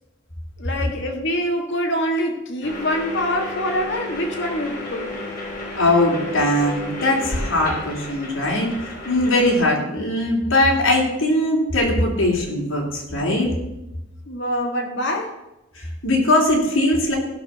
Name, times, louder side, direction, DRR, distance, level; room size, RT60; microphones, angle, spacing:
voice 1, 0.6-5.2 14.3-15.4, equal, 60° left, 3 dB, 1.9 m, -25 dB
sound 1, 2.6-9.6, left 2 dB, 45° left, 4.7 m, -33 dB
voice 2, 5.8-13.5 15.8-17.2, left 1 dB, 80° left, -2 dB, 3.5 m, -20 dB
16.0 x 6.0 x 6.6 m, 0.95 s
head